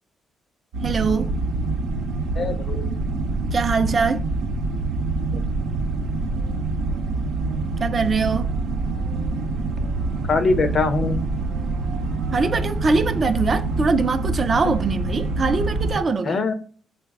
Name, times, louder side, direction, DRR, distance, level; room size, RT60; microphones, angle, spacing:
sound 1, 0.7-16.0, right 3 dB, 85° right, 0.6 m, -26 dB
voice 1, 0.8-1.3 3.5-4.3 7.8-8.5 12.3-16.4, right 4 dB, 40° right, 0.3 m, -22 dB
voice 2, 2.4-2.9 10.3-11.2 16.2-16.5, left 4 dB, 50° left, 0.5 m, -22 dB
3.2 x 2.0 x 3.5 m
cardioid pair, 90°, 0 cm